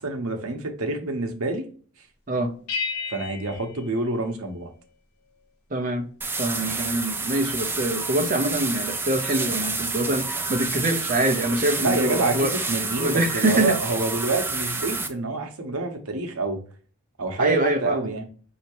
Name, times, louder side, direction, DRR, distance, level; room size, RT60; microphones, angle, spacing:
voice 1, 0.0-1.7 3.1-4.7 11.8-16.6 17.2-18.2, right 2 dB, 80° right, 0.9 m, -27 dB
sound 1, 2.7-4.9, left 5 dB, 80° left, 1.2 m, -34 dB
voice 2, 5.7-6.1 6.4-12.6 13.0-13.8 17.4-18.1, right 1 dB, 40° right, 0.7 m, -25 dB
sound 2, 6.2-15.1, right 3 dB, 10° right, 0.3 m, -29 dB
5.4 x 2.8 x 2.9 m
head